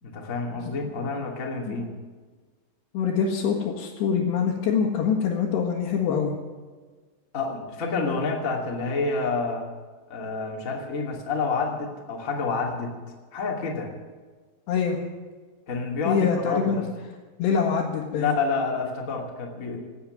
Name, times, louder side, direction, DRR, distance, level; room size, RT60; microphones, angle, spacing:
voice 1, 0.0-1.9 7.3-9.7 10.1-12.9 13.3-13.9 15.7-16.8 18.1-19.8, left 4 dB, 25° left, 0 dB, 1.7 m, -28 dB
voice 2, 0.7-1.1 1.7-1.8 2.9-6.3 14.7-15.0 16.0-16.8 17.4-18.3, left 6 dB, 65° left, -2 dB, 3.4 m, -25 dB
17.5 x 8.8 x 9.1 m, 1.4 s
omnidirectional pair, 5.8 m